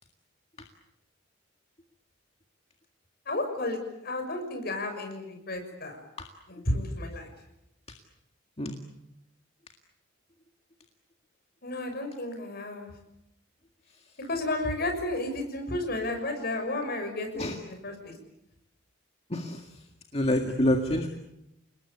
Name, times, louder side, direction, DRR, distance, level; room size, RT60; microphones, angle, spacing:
voice 1, 3.2-6.0 6.5-7.3 11.6-12.9 14.2-18.2, left 2 dB, 50° left, 5 dB, 6.4 m, -32 dB
voice 2, 19.3-19.6 20.1-21.1, left 1 dB, 30° left, 4 dB, 1.9 m, -26 dB
30.0 x 20.0 x 8.6 m, 0.86 s
head